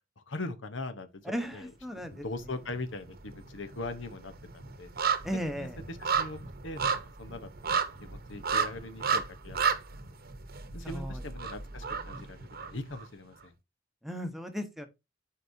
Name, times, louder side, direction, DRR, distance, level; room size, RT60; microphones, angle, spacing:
voice 1, 0.2-1.7 2.1-4.9 5.3-9.6 10.7-13.5, left 2 dB, 70° left, 1.0 m, -41 dB
voice 2, 1.2-2.2 5.2-5.8 10.8-11.2 14.0-14.9, equal, ahead, 1.0 m, -36 dB
sound 1, 2.0-2.8 3.1-13.1 13.4-13.5, right 6 dB, 50° right, 1.0 m, -33 dB
11.5 x 4.8 x 2.7 m
head